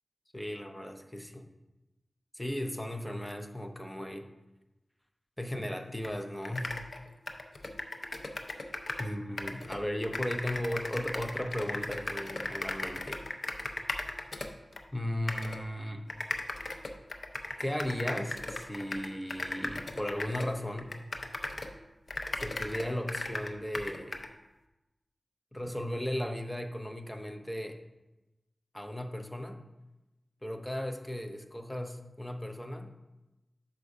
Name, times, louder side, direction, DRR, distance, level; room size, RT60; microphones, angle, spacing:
voice 1, 0.3-1.5 2.3-4.3 5.4-6.7 9.0-13.2 14.9-16.1 17.6-21.0 22.3-24.2 25.5-27.8 28.7-29.6 30.4-32.9, left 1 dB, 10° left, 5 dB, 0.7 m, -36 dB
sound 1, 6.0-6.1 6.4-9.1 9.4-14.8 15.3-15.6 16.1-21.8 22.1-24.3, left 2 dB, 55° left, 0.6 m, -37 dB
6.6 x 5.2 x 4.8 m, 1.0 s
wide cardioid pair, 80°, 0 cm